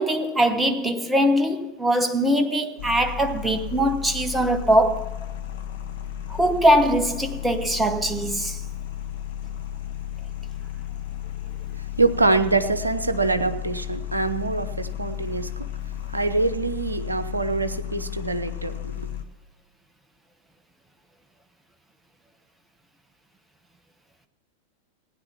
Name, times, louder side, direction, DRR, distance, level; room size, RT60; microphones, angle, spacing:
voice 1, 0.0-5.1 6.3-8.6, right 1 dB, 10° right, 1.1 m, -22 dB
sound 1, 2.8-19.2, left 11 dB, 60° left, 1.1 m, -33 dB
voice 2, 12.0-15.6 16.1-19.1, right 3 dB, 80° right, 0.8 m, -24 dB
16.0 x 9.8 x 5.8 m
figure-of-eight pair, 90°, 0 cm